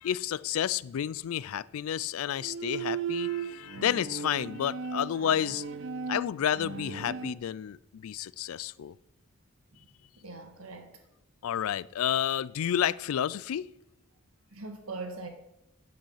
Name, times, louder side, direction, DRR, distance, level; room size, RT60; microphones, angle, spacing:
voice 1, 0.0-5.6 6.1-8.9 11.4-13.6, left 9 dB, 80° left, 0.3 m, -30 dB
Bowed string instrument, 2.3-7.3, right 6 dB, 60° right, 0.6 m, -36 dB
voice 2, 10.2-10.9 14.5-15.3, right 3 dB, 80° right, 1.8 m, -40 dB
10.0 x 7.7 x 5.7 m
head